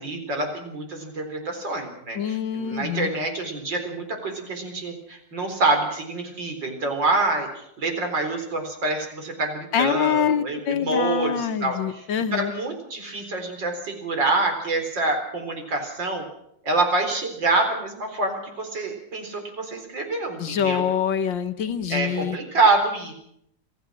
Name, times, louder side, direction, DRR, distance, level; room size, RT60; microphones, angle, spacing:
voice 1, 0.0-12.0 12.3-16.2 16.6-20.9 21.9-23.1, right 2 dB, 75° right, 4 dB, 4.8 m, -26 dB
voice 2, 2.2-3.1 9.7-12.5 20.4-22.4, left 8 dB, 90° left, 9 dB, 1.9 m, -25 dB
27.0 x 15.5 x 6.3 m, 0.72 s
omnidirectional pair, 2.0 m